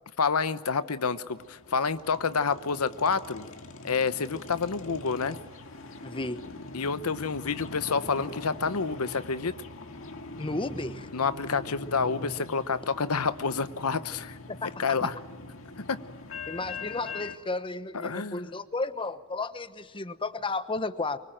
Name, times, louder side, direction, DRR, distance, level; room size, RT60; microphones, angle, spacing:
voice 1, 0.2-3.5 3.8-5.4 6.7-9.5 11.1-14.4 14.8-15.1 15.9-16.0 17.9-18.4, left 5 dB, 85° left, 13 dB, 0.9 m, -28 dB
sound 1, 0.7-17.4, left 2 dB, 65° left, 2.2 m, -42 dB
voice 2, 6.0-6.4 10.4-11.1 14.5-15.1 16.5-21.2, left 3 dB, 25° left, 12 dB, 1.0 m, -33 dB
24.5 x 24.0 x 9.0 m, 1.5 s
head